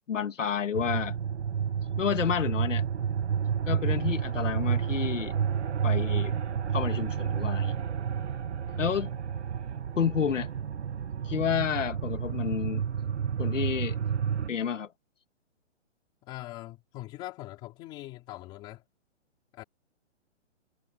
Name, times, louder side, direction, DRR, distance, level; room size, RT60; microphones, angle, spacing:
voice 1, 0.1-1.2 2.0-2.8 3.7-5.4 5.8-6.3 6.7-7.8 8.8-9.1 10.0-10.5 11.2-12.8 13.4-14.0 14.5-14.9, left 7 dB, 85° left, 2.1 m, -30 dB
sound 1, 0.7-14.5, right 7 dB, 65° right, 1.2 m, -30 dB
voice 2, 8.7-9.2 16.2-18.8 19.5-19.6, left 16 dB, 10° left, 3.5 m, -43 dB
hypercardioid pair, 180°, 37 cm